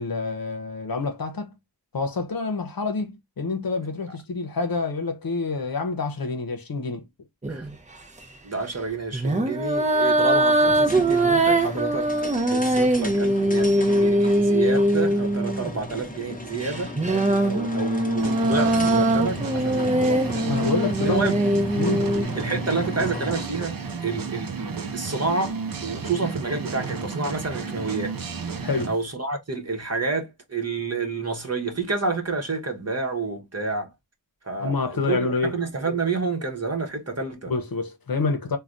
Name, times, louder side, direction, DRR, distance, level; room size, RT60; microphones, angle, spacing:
voice 1, 0.0-1.5 1.9-7.1 20.5-21.2 21.8-22.1 28.6-28.9 34.6-35.6 37.5-38.6, left 4 dB, 65° left, 0.7 m, -27 dB
sound 1, 7.4-7.7 9.1-15.7 16.6-22.2, right 1 dB, 20° right, 0.6 m, -22 dB
voice 2, 8.4-20.5 21.0-21.4 22.3-28.2 28.9-33.9 34.4-37.5, right 4 dB, 40° right, 0.9 m, -29 dB
sound 2, 10.8-23.6, left 1 dB, 20° left, 0.8 m, -35 dB
sound 3, 18.2-29.0, right 5 dB, 60° right, 0.6 m, -33 dB
3.2 x 2.2 x 2.5 m
wide cardioid pair, 40°, 39 cm